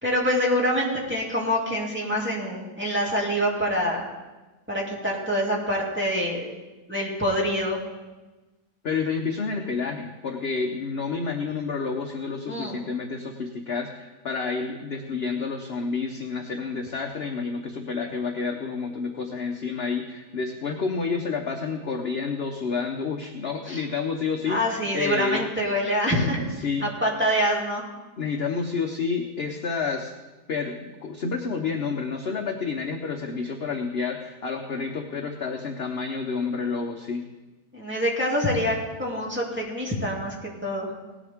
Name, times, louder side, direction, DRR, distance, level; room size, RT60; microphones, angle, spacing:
voice 1, 0.0-4.1 4.7-6.5 6.9-7.8 12.5-12.8 23.7-23.8 24.5-26.5 26.8-27.9 37.7-41.0, equal, 5° right, -4 dB, 2.5 m, -25 dB
voice 2, 8.8-25.5 26.6-26.9 28.2-30.1 30.5-37.3, left 5 dB, 45° left, 2 dB, 0.9 m, -29 dB
18.0 x 12.0 x 3.6 m, 1.2 s
omnidirectional pair, 1.8 m